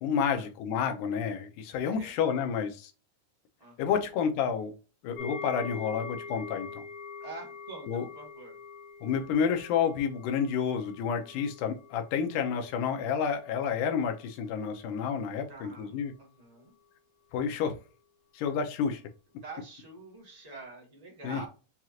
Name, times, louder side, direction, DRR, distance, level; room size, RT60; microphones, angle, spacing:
voice 1, 0.0-2.9 3.8-4.7 5.0-6.8 7.9-8.1 9.0-16.1 17.3-17.8 18.4-19.0 21.2-21.4, left 7 dB, 90° left, 2.4 m, -30 dB
voice 2, 3.6-4.1 7.2-8.6 15.5-16.7 19.4-21.5, right 3 dB, 75° right, 0.3 m, -46 dB
sound 1, 5.2-14.3 14.5-14.8 15.3-15.4, left 5 dB, 75° left, 1.4 m, -45 dB
6.1 x 2.4 x 2.8 m
omnidirectional pair, 3.6 m